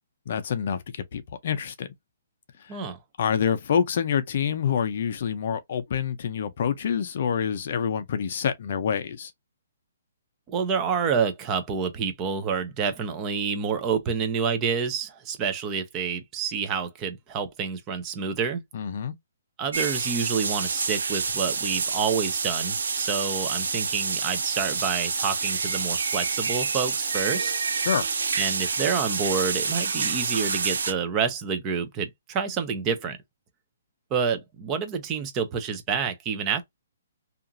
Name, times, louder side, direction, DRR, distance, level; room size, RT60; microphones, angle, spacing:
voice 1, 0.3-1.9 2.7-2.8 3.2-9.3 18.7-19.1 27.8-28.0, left 7 dB, 45° left, 0.5 m, -27 dB
voice 2, 10.5-18.6 19.6-27.5 28.4-33.2 34.1-36.6, right 6 dB, 20° right, 0.5 m, -28 dB
sound 1, 19.7-30.9, right 5 dB, 85° right, 0.7 m, -28 dB
2.8 x 2.4 x 2.5 m
hypercardioid pair, 170°, 0 cm